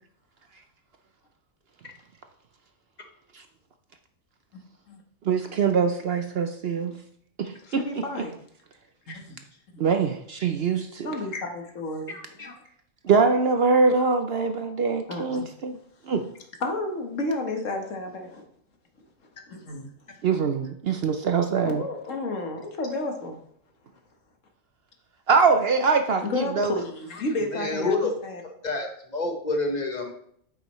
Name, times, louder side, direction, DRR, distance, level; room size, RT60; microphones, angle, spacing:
voice 1, 4.5-5.0 7.7-8.4 9.1-9.4 9.7-9.8 11.0-12.2 12.4-12.5 15.1-15.5 16.6-18.4 19.5-19.9 21.6-23.4 26.2-27.9 28.2-28.4, left 2 dB, 70° left, 3 dB, 1.6 m, -31 dB
voice 2, 5.2-6.9 7.4-8.0 9.8-11.1 13.0-15.7 16.1-16.3 20.2-21.9 25.3-26.7, right 5 dB, 55° right, 6 dB, 0.8 m, -23 dB
voice 3, 12.1-12.5 27.5-28.1 28.6-30.1, left 3 dB, 35° left, 3 dB, 1.3 m, -28 dB
8.9 x 8.1 x 3.1 m, 0.66 s
omnidirectional pair, 1.4 m